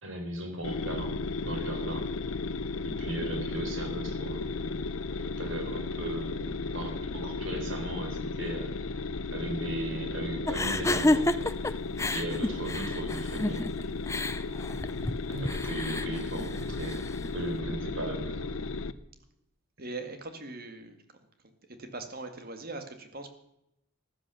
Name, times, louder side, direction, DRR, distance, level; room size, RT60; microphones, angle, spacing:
voice 1, 0.0-2.1 2.8-4.9 5.2-8.7 9.3-11.3 12.1-13.8 15.3-17.1 17.3-18.5, right 1 dB, 55° right, 4 dB, 4.2 m, -37 dB
sound 1, 0.6-18.9, left 3 dB, 65° left, 0.7 m, -35 dB
sound 2, 10.5-17.3, left 2 dB, 15° left, 0.5 m, -31 dB
voice 2, 19.8-21.0 21.7-23.3, right 2 dB, 40° right, 7 dB, 2.1 m, -40 dB
15.0 x 12.0 x 7.0 m, 0.82 s
head